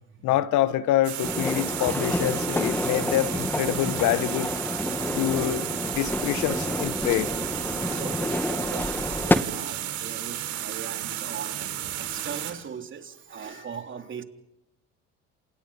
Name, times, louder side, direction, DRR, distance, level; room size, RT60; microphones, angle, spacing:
voice 1, 0.2-4.5 5.1-7.3, left 13 dB, 70° left, 1.5 m, -26 dB
sound 1, 1.0-12.5, right 12 dB, 70° right, 5.2 m, -33 dB
sound 2, 1.2-9.4, left 1 dB, 5° left, 2.4 m, -29 dB
voice 2, 8.0-14.2, right 7 dB, 40° right, 3.6 m, -39 dB
28.5 x 28.0 x 5.7 m
supercardioid pair, 80°, 30 cm